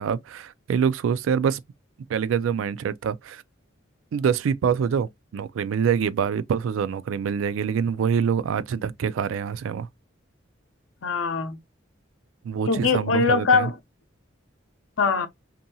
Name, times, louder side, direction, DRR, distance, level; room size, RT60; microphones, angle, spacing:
voice 1, 0.0-1.6 2.1-3.4 4.1-9.9 12.4-13.7, right 7 dB, 85° right, 0.3 m, -25 dB
voice 2, 11.0-11.6 12.7-13.8 15.0-15.3, left 4 dB, 85° left, 0.6 m, -22 dB
2.7 x 2.6 x 2.6 m
head